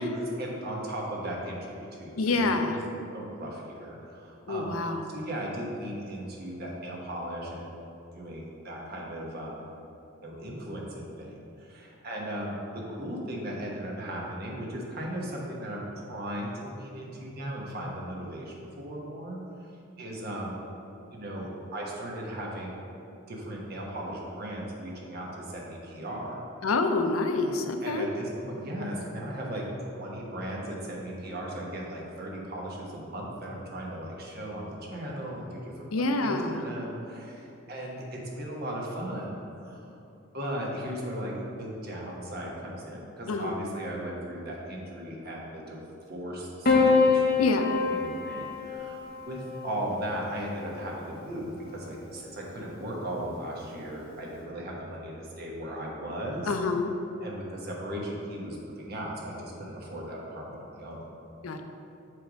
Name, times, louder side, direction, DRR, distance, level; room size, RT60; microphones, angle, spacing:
voice 1, 0.0-2.8 3.1-4.8 5.0-7.8 8.1-9.6 10.2-19.4 20.0-20.6 21.1-22.8 23.3-26.4 27.8-39.9 40.3-41.3 41.6-45.8 46.1-47.5 47.9-56.6 57.2-61.1, right 1 dB, 50° right, -2 dB, 1.1 m, -37 dB
voice 2, 2.2-2.8 4.5-5.0 26.6-28.1 35.9-36.6 43.3-43.5 47.4-47.7 56.5-56.9 61.4-61.6, left 3 dB, 85° left, 6 dB, 0.5 m, -27 dB
Piano, 46.6-51.1 52.3-53.0, left 4 dB, 45° left, 0.9 m, -27 dB
7.7 x 3.4 x 5.1 m, 2.8 s
head